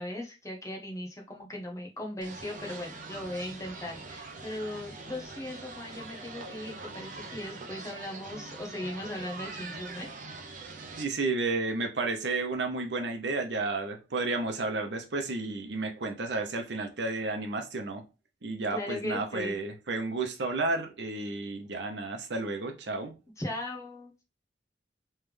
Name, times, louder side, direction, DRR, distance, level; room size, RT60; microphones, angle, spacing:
voice 1, 0.0-10.1 18.7-19.6 23.4-24.1, left 1 dB, 20° left, 0.9 m, -38 dB
sound 1, 2.2-11.0, right 3 dB, 45° right, 0.7 m, -43 dB
voice 2, 11.0-18.0 18.4-23.1, right 3 dB, 80° right, 0.8 m, -32 dB
3.3 x 3.3 x 3.3 m
head